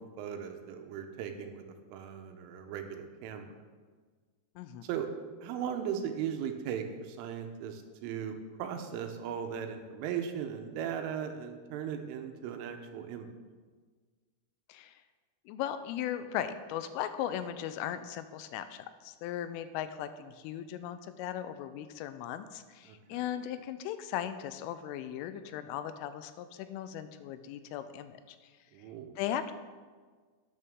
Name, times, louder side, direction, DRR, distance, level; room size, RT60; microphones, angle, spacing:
voice 1, 0.0-1.6 1.9-3.5 4.8-5.1 5.4-13.3 22.9-23.0 28.7-29.1, right 8 dB, 85° right, 6 dB, 3.4 m, -38 dB
voice 2, 4.6-4.9 14.7-15.0 15.5-28.4 29.2-29.5, left 10 dB, 90° left, 11 dB, 3.2 m, -37 dB
12.5 x 9.8 x 3.6 m, 1.5 s
omnidirectional pair, 5.7 m